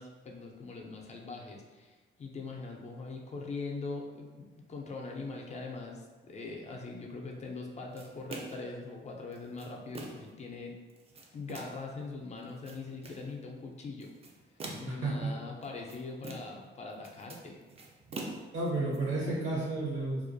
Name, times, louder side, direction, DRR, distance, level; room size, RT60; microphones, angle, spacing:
voice 1, 0.0-10.7 11.3-14.1 14.7-17.6, left 3 dB, 35° left, 0 dB, 0.4 m, -42 dB
sound 1, 8.0-8.7 9.3-10.3 10.9-11.9 12.4-13.3 14.0-15.1 15.6-16.7 16.9-19.0, right 2 dB, 30° right, 0.4 m, -44 dB
voice 2, 14.9-15.3 18.5-20.2, right 2 dB, 75° right, -4 dB, 0.9 m, -32 dB
2.3 x 2.1 x 2.5 m, 1.3 s
cardioid pair, 90°, 20 cm